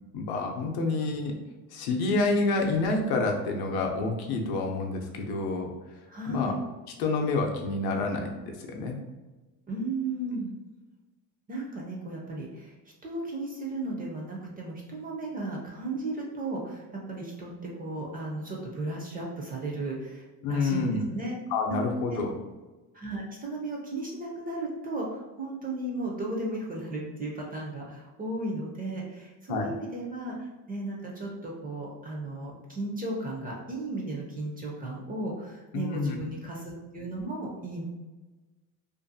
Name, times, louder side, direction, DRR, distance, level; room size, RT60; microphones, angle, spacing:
voice 1, 0.1-1.3 1.7-5.7 6.3-6.5 7.0-8.3 8.6-9.0 20.4-21.1 21.5-22.3 29.5-29.7 35.7-36.2, left 3 dB, 65° left, 2 dB, 0.6 m, -28 dB
voice 2, 6.1-6.5 9.7-10.5 11.5-12.7 13.0-21.3 21.7-21.8 22.1-22.3 22.9-37.8, right 2 dB, 25° right, -2 dB, 0.4 m, -35 dB
2.5 x 2.3 x 2.6 m, 1.2 s
cardioid pair, 130°, 40 cm